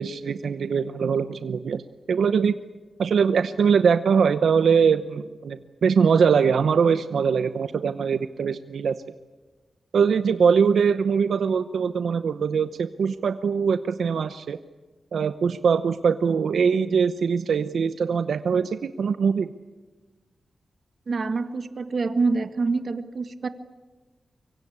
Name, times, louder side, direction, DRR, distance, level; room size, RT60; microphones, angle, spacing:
voice 1, 0.0-1.8 2.1-2.6 3.0-9.0 9.9-14.6 15.1-19.5, right 6 dB, 85° right, 11 dB, 0.8 m, -22 dB
voice 2, 21.1-23.5, right 4 dB, 50° right, 10 dB, 1.6 m, -26 dB
24.5 x 24.0 x 8.6 m, 1.3 s
wide cardioid pair, 145°, 0 cm